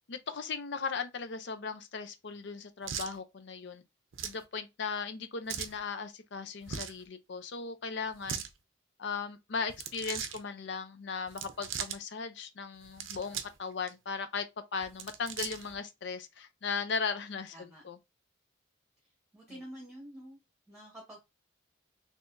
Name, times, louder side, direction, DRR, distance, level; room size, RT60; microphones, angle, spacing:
voice 1, 0.1-3.8 4.2-8.4 9.0-14.5 14.7-18.0 19.5-19.6, left 5 dB, 60° left, 0.6 m, -37 dB
sound 1, 2.8-3.1 4.1-4.4 5.5-5.8 6.6-7.0 8.1-8.5 9.7-10.4 11.3-12.0 12.8-13.6 13.9-14.0 14.8-15.7, right 8 dB, 75° right, 0.6 m, -39 dB
voice 2, 17.5-17.8 19.3-20.4 20.7-21.2, equal, 5° right, 1.0 m, -48 dB
4.1 x 3.0 x 2.6 m
head